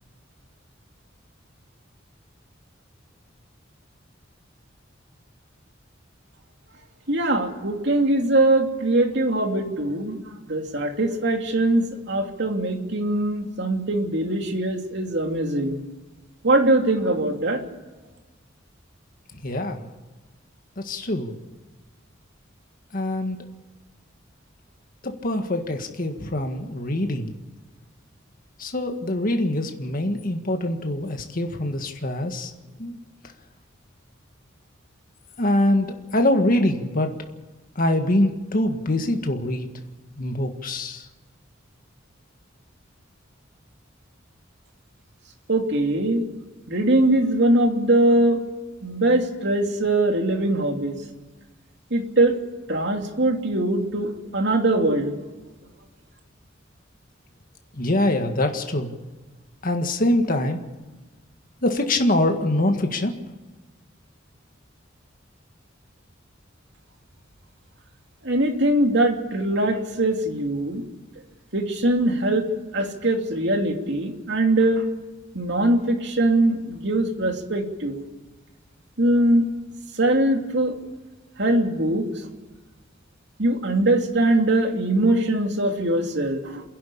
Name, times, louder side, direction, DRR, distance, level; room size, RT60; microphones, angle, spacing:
voice 1, 7.1-15.8 16.4-17.6 45.5-46.2 46.7-48.4 48.8-51.0 51.9-52.4 52.7-55.1 68.2-70.8 71.5-72.4 72.7-74.8 75.3-78.0 79.0-79.5 80.0-80.7 81.4-82.1 83.4-86.6, right 1 dB, 60° right, 3 dB, 2.8 m, -22 dB
voice 2, 19.4-19.8 20.8-21.4 22.9-23.4 25.0-27.3 28.6-32.5 32.8-33.0 35.4-37.1 37.8-39.7 40.2-41.1 57.8-58.9 59.6-60.6 61.6-63.1, left 1 dB, 45° left, 5 dB, 1.8 m, -24 dB
28.5 x 11.0 x 8.6 m, 1.2 s
head